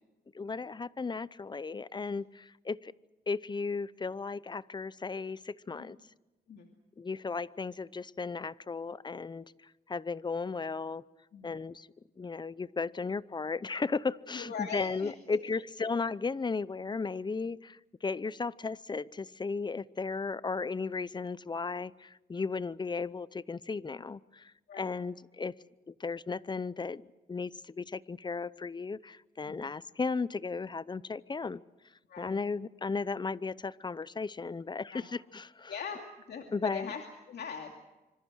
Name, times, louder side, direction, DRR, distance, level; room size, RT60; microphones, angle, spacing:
voice 1, 0.3-2.9 3.3-6.0 7.0-11.0 11.4-11.9 12.2-25.5 25.9-27.0 27.3-31.6 32.2-35.7 36.5-36.9, left 4 dB, 25° left, 19 dB, 0.7 m, -35 dB
voice 2, 14.3-15.4 24.7-25.0 29.5-29.7 32.1-32.4 34.9-35.1 35.7-36.0 36.3-37.7, left 6 dB, 70° left, 3 dB, 2.6 m, -41 dB
26.0 x 26.0 x 6.4 m, 1.1 s
cardioid pair, 85°, 18 cm